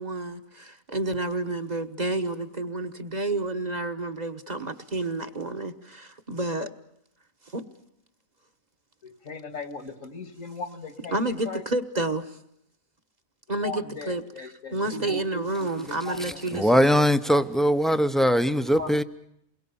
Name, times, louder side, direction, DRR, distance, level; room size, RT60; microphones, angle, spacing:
voice 1, 0.0-6.7 7.5-7.6 11.1-12.3 13.5-14.2 14.7-16.8, right 2 dB, 35° right, 1.4 m, -30 dB
voice 2, 9.0-11.6 13.5-15.2 15.6-16.4 17.3-17.4 18.8-19.0, left 3 dB, 70° left, 2.4 m, -38 dB
voice 3, 16.5-19.0, equal, ahead, 0.7 m, -21 dB
29.0 x 22.0 x 7.1 m
omnidirectional pair, 1.4 m